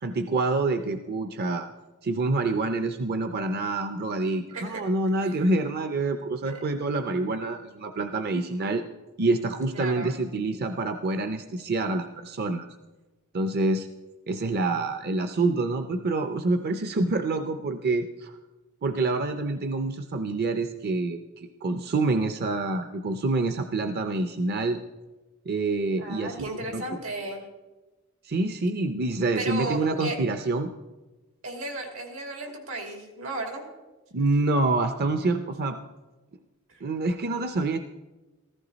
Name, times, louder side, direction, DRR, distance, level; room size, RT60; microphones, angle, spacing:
voice 1, 0.0-1.7 2.0-8.8 9.2-12.7 13.3-13.9 14.3-18.3 18.8-24.8 25.5-26.5 26.7-26.8 28.2-30.7 34.1-35.8 36.8-37.8, right 2 dB, 50° right, 8 dB, 0.6 m, -27 dB
voice 2, 4.5-4.8 5.2-5.5 6.4-6.8 9.7-10.1 26.0-27.4 29.4-30.2 31.4-33.6 36.7-36.8, right 2 dB, 85° right, 3 dB, 2.7 m, -35 dB
14.5 x 14.5 x 4.0 m, 1.2 s
head